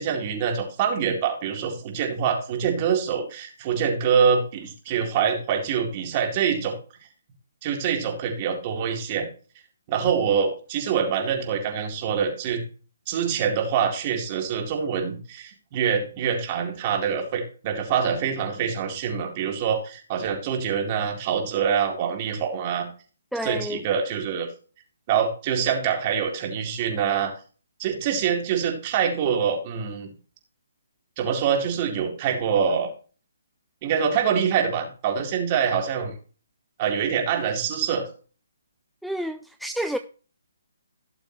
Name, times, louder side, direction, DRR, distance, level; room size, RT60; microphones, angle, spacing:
voice 1, 0.0-6.8 7.6-9.3 9.9-12.6 13.1-22.9 23.4-24.5 25.1-27.3 27.8-30.1 31.2-32.9 33.8-36.1 36.8-38.1, right 7 dB, 35° right, 4.0 m, -25 dB
voice 2, 23.3-23.8 39.0-40.0, equal, ahead, 0.5 m, -29 dB
17.5 x 6.9 x 3.3 m
hypercardioid pair, 150°, 0 cm